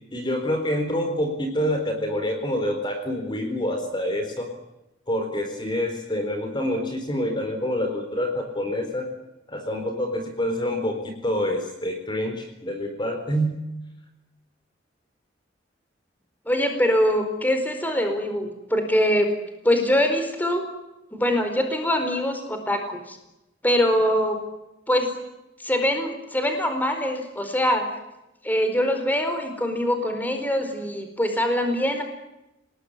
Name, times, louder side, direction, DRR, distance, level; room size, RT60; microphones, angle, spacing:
voice 1, 0.1-4.5 5.1-9.1 9.5-13.6, equal, 25° left, 5 dB, 4.1 m, -27 dB
voice 2, 16.5-19.3 19.6-20.6 21.1-23.2 23.6-24.4 24.9-25.1 25.6-27.8 28.4-32.0, equal, 10° left, 6 dB, 4.5 m, -23 dB
28.5 x 20.0 x 10.0 m, 0.94 s
head